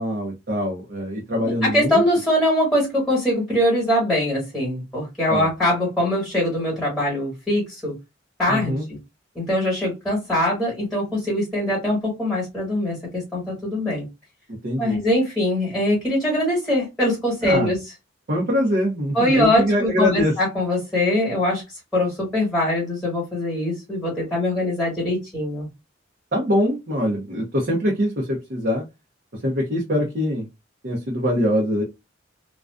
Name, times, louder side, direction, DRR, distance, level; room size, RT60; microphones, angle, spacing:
voice 1, 0.0-2.0 5.3-5.5 8.5-8.8 14.6-15.0 17.4-17.7 18.3-20.3 26.3-28.8 29.4-30.5 30.8-31.8, equal, 50° right, 0.7 m, -23 dB
voice 2, 1.6-7.9 8.4-9.0 9.3-14.1 14.8-17.8 19.1-21.6 21.9-25.7, left 1 dB, ahead, 1.3 m, -22 dB
2.5 x 2.2 x 2.2 m
head